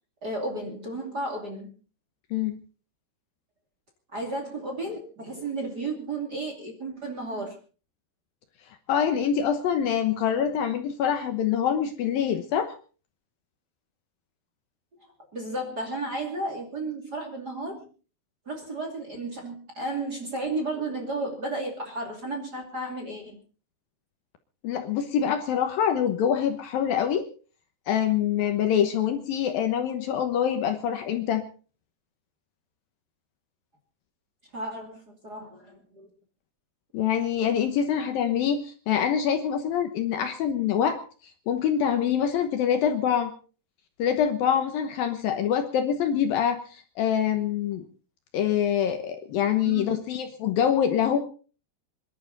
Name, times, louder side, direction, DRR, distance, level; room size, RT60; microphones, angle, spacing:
voice 1, 0.2-1.7 4.1-7.6 15.3-17.8 18.5-23.4 34.5-36.1 49.6-50.0, right 2 dB, 30° right, 3 dB, 2.5 m, -33 dB
voice 2, 8.9-12.7 24.6-27.3 27.9-31.4 36.9-41.0 41.5-43.3 44.0-47.8 48.3-51.2, left 8 dB, 70° left, 7 dB, 2.6 m, -25 dB
26.5 x 11.5 x 4.0 m, 0.37 s
omnidirectional pair, 4.9 m